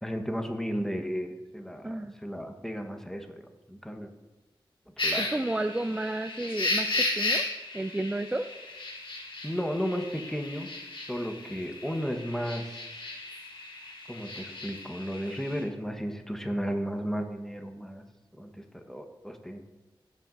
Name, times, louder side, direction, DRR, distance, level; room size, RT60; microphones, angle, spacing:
voice 1, 0.0-3.4 3.7-4.1 5.0-5.3 9.4-10.7 11.1-12.8 14.1-18.0 18.4-19.7, equal, 5° left, 4 dB, 1.2 m, -34 dB
sound 1, 5.0-15.6, left 2 dB, 80° left, 3.2 m, -34 dB
voice 2, 5.2-7.4 7.7-8.5, right 1 dB, 10° right, 8 dB, 0.4 m, -31 dB
16.5 x 7.5 x 2.6 m, 1.1 s
wide cardioid pair, 70°, 9 cm